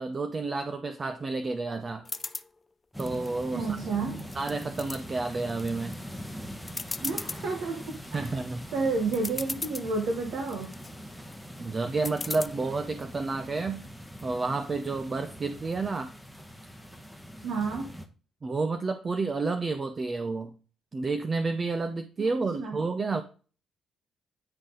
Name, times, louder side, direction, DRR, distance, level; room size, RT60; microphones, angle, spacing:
voice 1, 0.0-2.1 3.0-3.8 4.3-6.0 8.1-8.6 11.6-13.8 14.2-16.1 18.4-20.5 20.9-23.2, right 3 dB, 35° right, 8 dB, 0.5 m, -30 dB
sound 1, 2.0-2.5 3.0-3.8 4.2-5.0 5.5-5.9 6.3-6.4 6.7-7.4 7.9-8.3 8.9-9.0 9.1-9.9 10.4-10.9 12.0-12.5, left 3 dB, 25° left, 0.4 m, -36 dB
sound 2, 2.9-18.1, equal, ahead, 1.0 m, -42 dB
voice 2, 3.5-4.2 7.0-8.2 8.7-10.7 17.4-17.9 22.5-22.8, right 4 dB, 75° right, 3 dB, 1.1 m, -30 dB
9.7 x 4.0 x 3.8 m, 0.38 s
cardioid pair, 90°, 0 cm